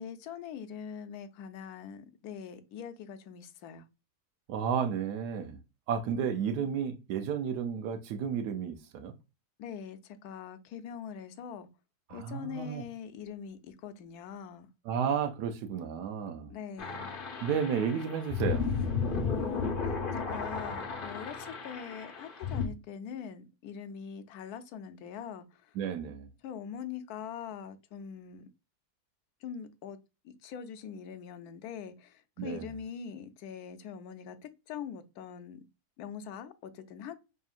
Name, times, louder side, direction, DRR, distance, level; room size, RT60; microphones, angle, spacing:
voice 1, 0.0-3.9 9.6-11.7 12.1-14.7 16.5-17.2 19.2-25.7 26.4-28.5 29.4-30.0 30.2-35.6 36.0-37.1, left 7 dB, 75° left, 1.1 m, -43 dB
voice 2, 4.5-5.6 5.9-9.1 12.1-12.8 14.9-16.5 17.4-18.7 25.8-26.3 32.4-32.7, right 7 dB, 80° right, 1.2 m, -32 dB
sound 1, 16.8-22.7, left 5 dB, 45° left, 0.7 m, -34 dB
5.3 x 2.8 x 2.4 m
omnidirectional pair, 1.7 m